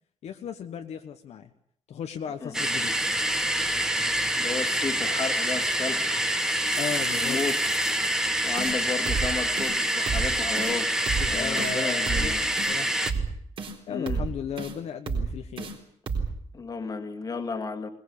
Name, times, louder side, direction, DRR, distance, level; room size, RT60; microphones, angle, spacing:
voice 1, 0.2-1.5 1.9-3.0 6.8-7.4 8.0-8.5 11.2-13.0 13.9-15.8, left 8 dB, 65° left, 1.3 m, -36 dB
sound 1, 2.5-13.1, right 1 dB, 5° right, 1.4 m, -26 dB
voice 2, 4.3-6.3 7.1-7.6 8.1-12.5 13.9-14.2 16.5-17.9, left 4 dB, 30° left, 2.1 m, -33 dB
sound 2, 8.6-8.8 9.1-9.3 9.6-9.7 10.1-10.3 10.6-10.7 11.1-11.3 11.6-11.7 12.1-12.3 12.6-12.7 13.1-13.3 13.6-13.7 14.1-14.3 14.6-14.7 15.1-15.3 15.6-15.7 16.1-16.3, right 5 dB, 45° right, 3.9 m, -29 dB
21.5 x 20.0 x 8.4 m
wide cardioid pair, 180°, 12 cm